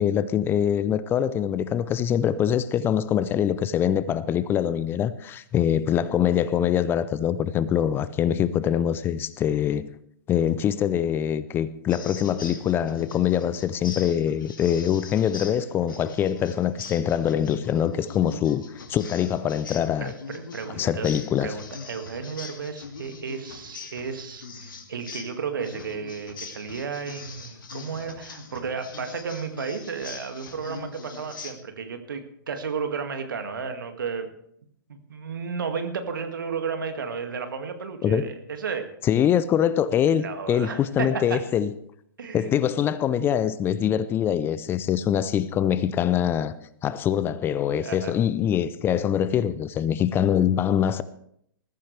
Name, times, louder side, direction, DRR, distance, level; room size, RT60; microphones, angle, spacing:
voice 1, 0.0-9.9 10.3-18.6 18.9-20.1 20.7-21.6 38.0-38.3 39.0-41.7 42.3-46.5 46.8-51.0, left 9 dB, 20° left, 0.5 m, -24 dB
sound 1, 11.9-31.5, left 4 dB, 70° left, 2.3 m, -41 dB
voice 2, 20.0-21.1 21.4-34.3 34.9-38.9 40.2-41.4 42.2-42.6 47.8-48.1, right 5 dB, 65° right, 2.1 m, -33 dB
20.0 x 14.0 x 3.3 m
figure-of-eight pair, 115°, 12 cm